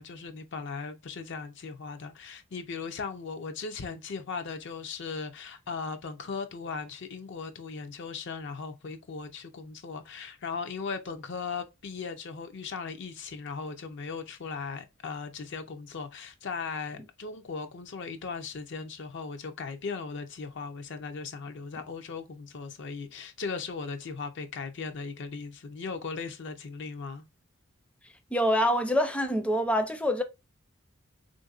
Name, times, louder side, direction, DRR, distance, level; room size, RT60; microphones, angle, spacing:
voice 1, 0.0-27.2, left 4 dB, 65° left, 0.5 m, -38 dB
voice 2, 28.3-30.2, equal, 5° left, 0.4 m, -25 dB
3.5 x 2.6 x 2.3 m
head